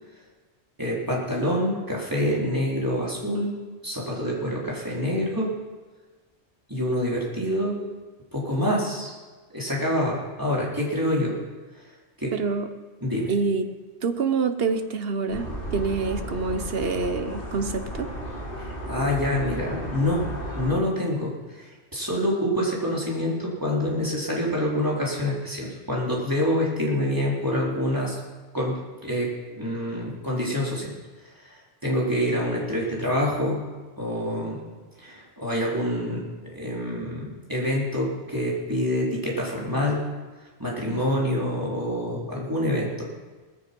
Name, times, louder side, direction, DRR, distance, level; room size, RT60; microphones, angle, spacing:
voice 1, 0.8-3.5 3.8-5.5 6.7-7.8 8.3-9.1 9.5-11.4 12.2-12.3 13.0-13.3 18.6-20.3 20.6-28.2 28.5-30.9 31.5-33.6 34.0-34.6 35.0-40.0 40.6-43.1, equal, 20° right, -4 dB, 4.0 m, -26 dB
voice 2, 12.3-12.7 13.3-13.6 14.0-18.1, right 4 dB, 65° right, 9 dB, 1.3 m, -26 dB
sound 1, 15.3-20.7, equal, 55° left, 3.4 m, -34 dB
18.0 x 14.5 x 5.4 m, 1.3 s
omnidirectional pair, 1.1 m